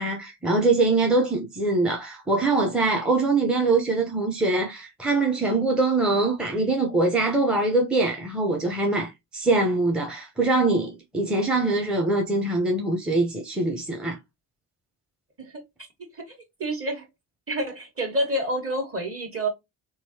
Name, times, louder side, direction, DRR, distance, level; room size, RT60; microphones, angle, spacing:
voice 1, 0.0-14.2, right 2 dB, ahead, 0.8 m, -23 dB
voice 2, 16.1-17.1 17.5-19.5, right 1 dB, 25° right, 1.6 m, -28 dB
3.7 x 3.0 x 2.8 m
figure-of-eight pair, 50°, 49 cm